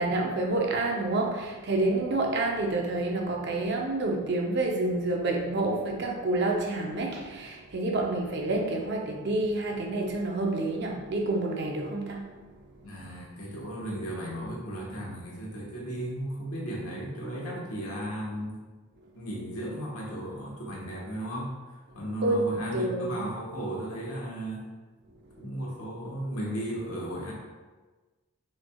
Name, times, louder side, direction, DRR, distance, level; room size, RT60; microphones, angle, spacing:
voice 1, 0.0-12.5 22.2-22.4 22.7-23.3, right 2 dB, 50° right, 0 dB, 0.6 m, -28 dB
voice 2, 12.8-18.6 19.1-21.5 21.9-24.7 25.4-27.3, right 1 dB, 80° left, -4 dB, 1.3 m, -35 dB
6.2 x 3.3 x 2.3 m, 1.3 s
head